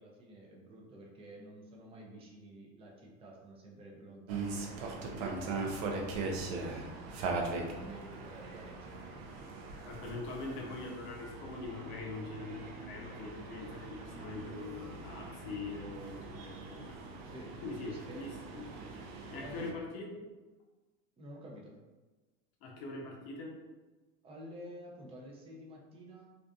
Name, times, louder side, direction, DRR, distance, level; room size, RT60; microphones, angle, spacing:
voice 1, 0.0-9.2 17.2-18.3 19.4-19.8 21.2-21.8 24.2-26.4, right 1 dB, 15° right, -3 dB, 0.5 m, -51 dB
sound 1, 4.3-19.7, right 3 dB, 60° right, 0.6 m, -41 dB
voice 2, 9.8-17.0 17.6-18.7 19.3-20.2 22.6-23.6, left 3 dB, 50° left, 0 dB, 0.6 m, -43 dB
2.5 x 2.4 x 2.3 m, 1.2 s
hypercardioid pair, 100°, 39 cm